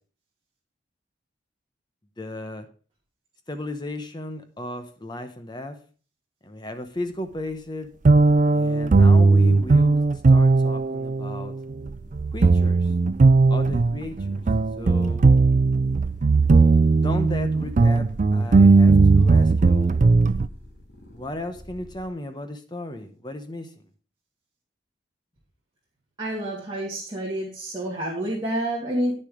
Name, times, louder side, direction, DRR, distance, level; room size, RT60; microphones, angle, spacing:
voice 1, 2.2-2.7 3.5-5.8 6.4-7.9 8.5-10.0 10.3-11.5 12.3-12.9 13.5-14.4 14.8-15.3 17.0-20.0 21.1-23.7, left 1 dB, 25° left, 8 dB, 0.9 m, -35 dB
sound 1, 8.0-20.5, right 3 dB, 40° right, 0.4 m, -17 dB
sound 2, 11.8-22.1, left 1 dB, 60° left, 2.9 m, -47 dB
voice 2, 26.2-29.1, right 1 dB, 20° right, -7 dB, 2.6 m, -28 dB
9.9 x 6.9 x 4.9 m, 0.39 s
head